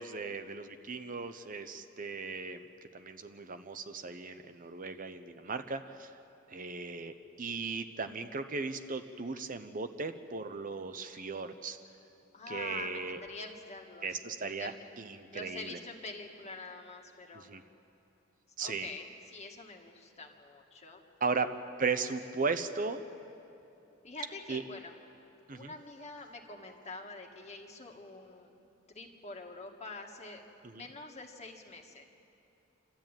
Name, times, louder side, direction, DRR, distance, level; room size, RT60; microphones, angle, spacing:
voice 1, 0.0-2.6 2.9-6.1 6.5-11.8 12.5-13.2 14.0-15.8 17.3-17.6 18.6-18.9 21.2-21.5 21.8-23.1 24.5-24.6 25.5-25.7 30.7-30.8, right 4 dB, 40° right, 9 dB, 0.8 m, -37 dB
voice 2, 12.3-14.8 15.3-17.5 18.6-21.0 24.0-24.9 25.5-28.5 28.9-30.4 30.7-32.1, left 3 dB, 35° left, 2 dB, 1.9 m, -46 dB
29.0 x 13.0 x 9.1 m, 2.8 s
head